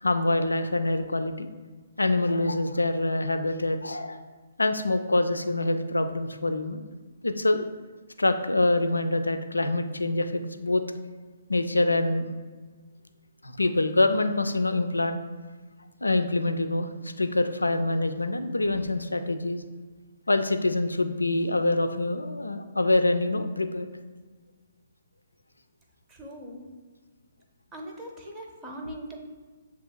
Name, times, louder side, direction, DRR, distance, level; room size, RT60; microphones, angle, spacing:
voice 1, 0.0-1.5 2.0-4.2 4.6-6.8 7.2-7.7 8.2-10.8 11.5-12.3 13.4-15.2 16.0-19.6 20.3-23.9, left 2 dB, 85° left, 8 dB, 0.3 m, -25 dB
voice 2, 26.1-26.6 27.7-29.2, right 1 dB, 15° right, 0 dB, 0.7 m, -40 dB
6.9 x 2.8 x 2.3 m, 1.4 s
figure-of-eight pair, 130°, 0 cm